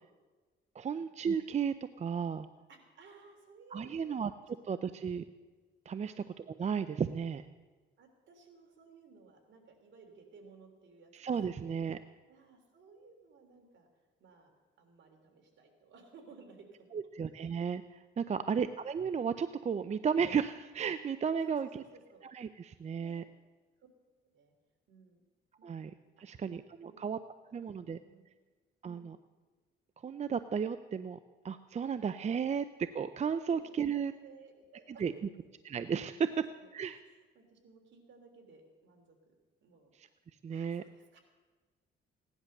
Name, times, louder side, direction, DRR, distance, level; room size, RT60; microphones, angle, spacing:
voice 1, 0.8-2.5 3.7-4.3 4.7-5.2 5.9-7.4 11.1-12.0 16.9-21.8 22.3-23.2 25.6-25.9 26.2-27.2 27.5-28.0 28.8-29.2 30.0-31.2 31.4-32.7 32.9-34.1 35.0-35.1 35.7-36.3 36.7-37.0 40.0-40.1 40.4-40.8, right 6 dB, 35° right, 12 dB, 0.5 m, -34 dB
voice 2, 2.7-4.6 4.9-5.0 6.0-6.2 8.0-11.3 11.6-11.7 12.3-13.9 14.2-14.5 14.8-17.0 21.4-22.2 23.0-23.1 23.8-23.9 24.2-24.5 24.9-25.2 25.6-25.8 26.2-26.5 26.8-27.1 27.5-28.3 28.8-29.1 33.4-33.6 34.0-35.0 36.3-39.3 39.6-39.9 40.5-41.2, right 4 dB, 65° right, 3 dB, 3.3 m, -58 dB
17.0 x 11.0 x 6.6 m, 1.3 s
cardioid pair, 90°, 20 cm